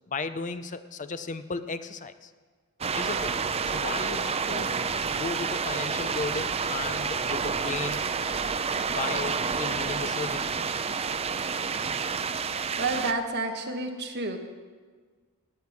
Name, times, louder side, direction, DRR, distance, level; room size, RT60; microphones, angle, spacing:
voice 1, 0.1-2.3 3.0-3.4 3.6-4.8 5.0-8.1 8.9-10.5, left 4 dB, 35° left, 11 dB, 0.6 m, -35 dB
sound 1, 2.8-13.1, right 5 dB, 30° right, 0.5 m, -29 dB
voice 2, 12.8-14.4, right 3 dB, 50° right, 4 dB, 1.4 m, -29 dB
18.0 x 9.0 x 6.0 m, 1.5 s
head